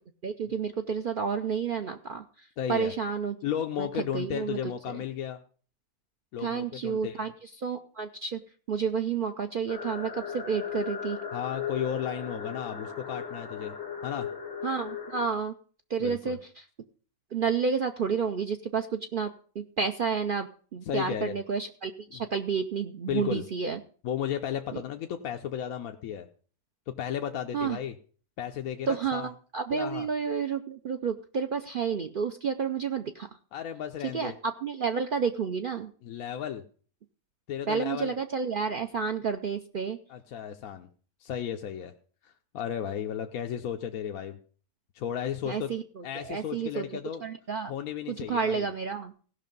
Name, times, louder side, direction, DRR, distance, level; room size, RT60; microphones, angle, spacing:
voice 1, 0.2-3.4 3.8-4.6 4.9-5.0 6.4-8.4 8.7-11.2 14.6-15.5 15.9-16.6 17.3-23.8 27.5-27.8 28.9-33.3 34.1-35.9 37.7-40.0 45.5-46.9 47.2-47.7 48.1-49.1, right 6 dB, 60° right, 6 dB, 0.5 m, -30 dB
voice 2, 2.6-2.9 3.4-5.4 6.3-7.3 11.3-13.7 14.0-14.3 16.0-16.4 20.9-21.3 22.1-22.2 23.1-23.4 24.0-26.3 27.0-27.9 28.4-29.3 29.7-30.1 33.5-34.3 36.0-36.6 37.5-38.1 40.1-40.9 41.2-41.9 42.2-44.4 44.9-45.7 46.0-47.2 47.7-48.7, left 9 dB, 75° left, 4 dB, 1.1 m, -34 dB
sound 1, 9.7-15.3, left 7 dB, 45° left, 2.1 m, -37 dB
16.5 x 5.8 x 5.3 m, 0.43 s
omnidirectional pair, 1.6 m